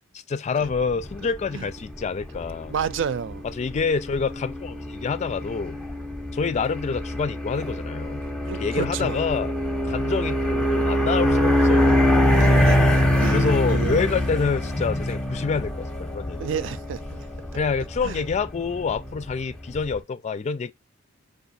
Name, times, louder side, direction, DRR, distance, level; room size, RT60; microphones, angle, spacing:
voice 1, 0.1-2.7 3.5-5.8 6.3-8.2 8.5-9.5 9.8-12.1 13.3-16.7 17.5-20.7, left 5 dB, 35° left, 0.3 m, -27 dB
sound 1, 0.7-20.0, left 1 dB, 5° left, 0.7 m, -24 dB
voice 2, 2.7-3.4 8.5-9.2 12.4-14.2 16.4-17.3 18.0-18.2, right 7 dB, 65° right, 0.4 m, -31 dB
4.9 x 2.6 x 4.0 m
head